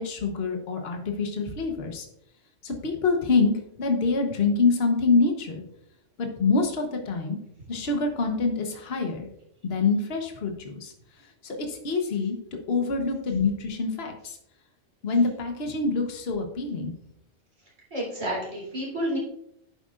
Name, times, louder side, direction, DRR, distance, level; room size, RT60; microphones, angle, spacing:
voice 1, 0.0-2.1 2.6-3.5 3.8-5.6 6.2-7.4 7.7-9.3 9.6-10.9 11.4-12.4 12.7-14.4 15.0-16.9, left 4 dB, 55° left, 3 dB, 1.3 m, -25 dB
voice 2, 17.9-19.2, equal, 80° right, -3 dB, 4.0 m, -30 dB
11.0 x 7.9 x 2.5 m, 0.75 s
omnidirectional pair, 1.3 m